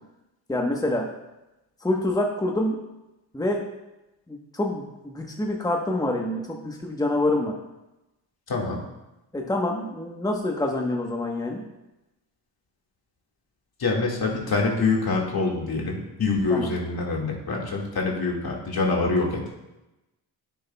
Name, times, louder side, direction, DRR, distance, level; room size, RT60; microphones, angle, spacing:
voice 1, 0.5-1.1 1.8-2.8 3.3-3.6 4.3-7.6 9.3-11.6 16.5-16.7, left 1 dB, 10° left, 1 dB, 1.1 m, -26 dB
voice 2, 8.5-8.8 13.8-19.4, left 3 dB, 60° left, -1 dB, 2.1 m, -25 dB
10.0 x 7.1 x 2.3 m, 0.97 s
cardioid pair, 65°, 42 cm